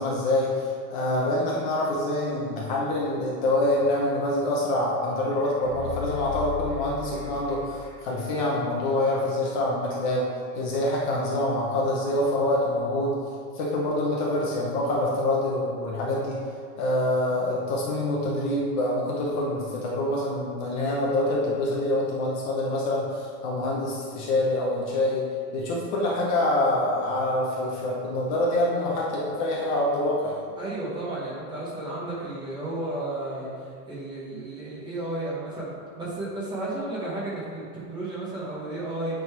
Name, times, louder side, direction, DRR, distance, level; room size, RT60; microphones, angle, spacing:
voice 1, 0.0-10.3 10.5-13.2 13.5-16.4 16.8-25.3 25.5-30.4, left 1 dB, 30° left, -3 dB, 0.8 m, -26 dB
sound 1, 5.3-8.2 8.5-8.6, left 8 dB, 5° left, 1.7 m, -36 dB
voice 2, 30.6-39.2, right 2 dB, 10° right, -8 dB, 1.0 m, -33 dB
8.6 x 3.9 x 4.5 m, 2.3 s
supercardioid pair, 175°, 46 cm